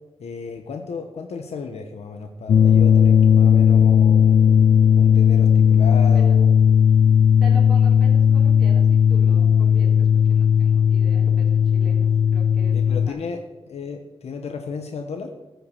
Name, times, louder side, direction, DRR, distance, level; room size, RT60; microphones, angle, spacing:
voice 1, 0.2-6.5 12.7-13.4 13.7-15.3, left 4 dB, 85° left, 4 dB, 1.1 m, -33 dB
sound 1, 2.5-13.1, left 8 dB, 55° left, 0.4 m, -16 dB
voice 2, 7.4-13.2, right 1 dB, ahead, -4 dB, 3.6 m, -41 dB
14.5 x 5.8 x 7.0 m, 1.1 s
wide cardioid pair, 120°, 11 cm